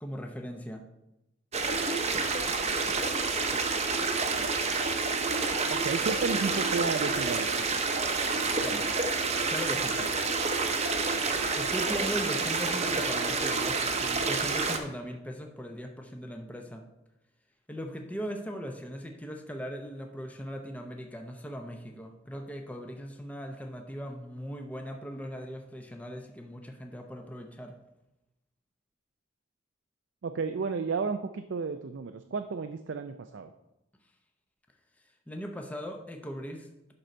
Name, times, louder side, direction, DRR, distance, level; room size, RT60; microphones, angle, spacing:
voice 1, 0.0-0.8 8.6-8.9 9.5-10.3 11.6-16.8 17.7-27.8 35.3-36.9, equal, 10° left, 3 dB, 0.7 m, -39 dB
sound 1, 1.5-14.8, right 4 dB, 35° right, 0.8 m, -28 dB
voice 2, 5.7-7.7 30.2-33.5, right 4 dB, 70° right, 7 dB, 0.4 m, -32 dB
11.5 x 3.9 x 4.4 m, 0.92 s
head